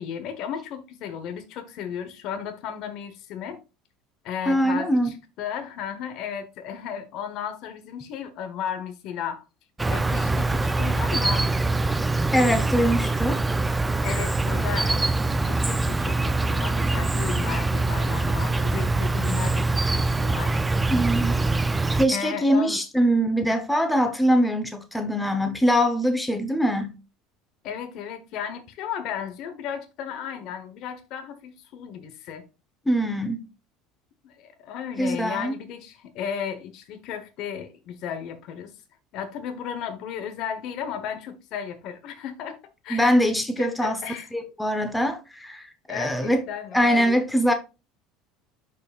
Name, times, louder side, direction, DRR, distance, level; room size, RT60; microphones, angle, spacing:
voice 1, 0.0-3.6 4.2-9.4 9.9-11.5 14.0-15.1 15.4-20.6 22.1-22.8 27.6-32.4 34.2-38.7 39.1-42.6 42.8-43.1 43.6-44.3 45.9-47.2, left 8 dB, 60° left, 1.1 m, -34 dB
voice 2, 4.5-5.1 12.3-13.4 20.9-21.3 22.0-27.0 32.9-33.5 35.0-35.5 42.9-44.0 44.3-46.4 46.7-47.5, equal, 5° left, 1.1 m, -23 dB
Insect, 9.8-22.0, right 2 dB, 15° right, 0.5 m, -24 dB
11.5 x 4.8 x 2.5 m
supercardioid pair, 100°, 0 cm